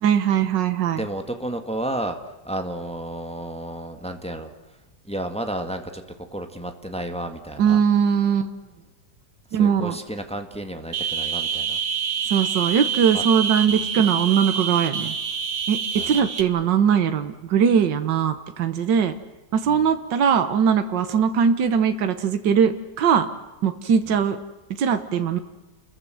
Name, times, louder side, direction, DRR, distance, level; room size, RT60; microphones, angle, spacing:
voice 1, 0.0-1.0 7.6-8.5 9.5-10.0 12.3-15.1 15.7-15.8 16.1-19.1 19.5-23.3 23.6-24.4 24.8-25.4, right 7 dB, 80° right, 8 dB, 1.8 m, -20 dB
voice 2, 0.9-4.8 5.0-7.8 9.5-11.8 13.1-13.2 13.7-13.8 15.9-16.2 19.6-19.9 24.1-24.2, right 1 dB, 5° left, 5 dB, 1.7 m, -32 dB
sound 1, 10.9-16.4, right 7 dB, 55° right, 1.9 m, -27 dB
30.0 x 21.5 x 7.8 m, 1.2 s
omnidirectional pair, 1.9 m